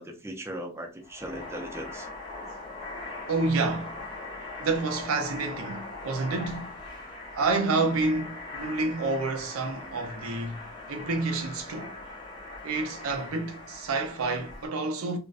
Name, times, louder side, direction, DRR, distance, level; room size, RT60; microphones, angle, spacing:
voice 1, 0.0-2.1, equal, 15° right, 0.4 m, -38 dB
sound 1, 1.0-14.7, left 2 dB, 20° left, 0.9 m, -41 dB
voice 2, 3.3-4.0 4.6-6.7 7.3-11.9 12.6-15.2, right 3 dB, 90° right, 0.5 m, -29 dB
2.5 x 2.1 x 2.3 m
head